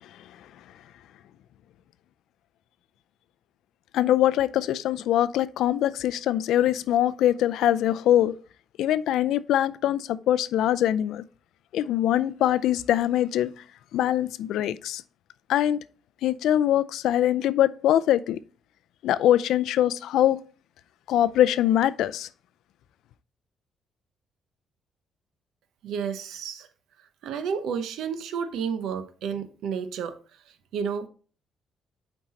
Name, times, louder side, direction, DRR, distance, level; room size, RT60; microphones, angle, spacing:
voice 1, 3.9-8.3 8.8-11.2 11.7-13.5 13.9-15.0 15.5-15.8 16.2-18.4 19.0-20.4 21.1-22.3, left 12 dB, 85° left, 0.4 m, -23 dB
voice 2, 25.8-26.7 27.2-30.1 30.7-31.1, right 7 dB, 80° right, 0.8 m, -31 dB
7.6 x 4.6 x 4.1 m
cardioid pair, 90°, 0 cm